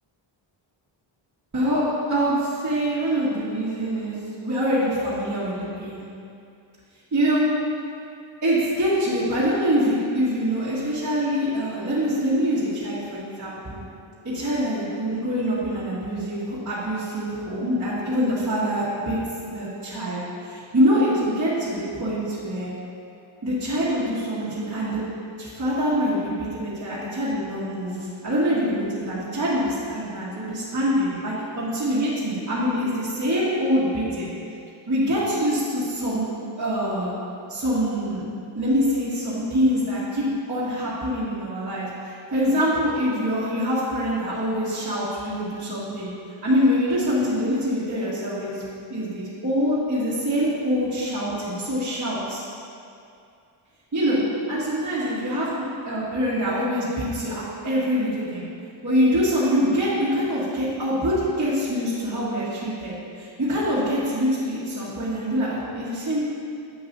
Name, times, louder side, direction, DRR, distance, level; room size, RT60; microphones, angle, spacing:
voice 1, 1.5-4.1 4.4-6.0 7.1-7.5 8.4-13.8 14.2-19.2 19.5-22.7 23.4-25.0 25.4-28.0 28.2-34.3 34.9-36.2 36.6-37.1 37.5-38.2 38.5-46.1 46.4-48.6 48.9-52.4 53.9-54.2 54.5-58.5 58.8-66.2, equal, 35° right, -11 dB, 1.9 m, -24 dB
9.7 x 7.9 x 2.7 m, 2.5 s
wide cardioid pair, 155°, 49 cm